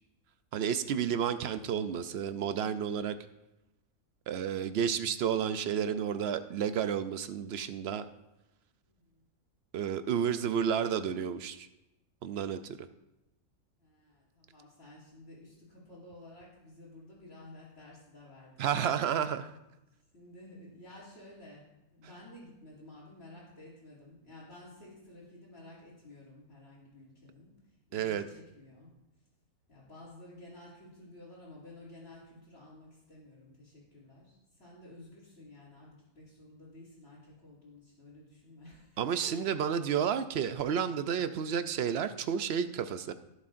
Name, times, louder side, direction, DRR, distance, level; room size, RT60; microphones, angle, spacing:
voice 1, 0.5-3.2 4.3-8.0 9.7-11.7 12.2-12.9 18.6-19.5 27.9-28.2 39.0-43.1, right 8 dB, 70° right, 11 dB, 0.6 m, -31 dB
voice 2, 8.8-9.2 13.8-18.7 20.1-28.9 29.7-39.6, left 1 dB, 45° left, -10 dB, 3.1 m, -53 dB
16.0 x 7.3 x 2.6 m, 0.96 s
omnidirectional pair, 1.5 m